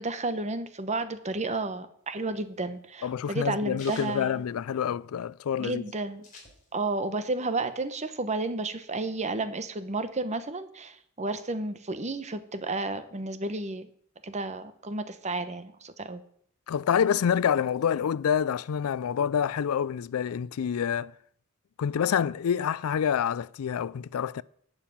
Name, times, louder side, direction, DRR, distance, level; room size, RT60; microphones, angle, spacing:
voice 1, 0.0-4.4 5.6-6.2 6.7-13.9 14.2-16.2, right 2 dB, 30° right, 1.0 m, -32 dB
sound 1, 2.0-5.2 5.5-5.6 5.8-7.1 7.4-8.6, left 3 dB, 40° left, 4.1 m, -51 dB
voice 2, 3.0-5.8 16.7-21.1 21.8-24.4, left 8 dB, 75° left, 0.4 m, -27 dB
11.5 x 5.8 x 8.7 m
head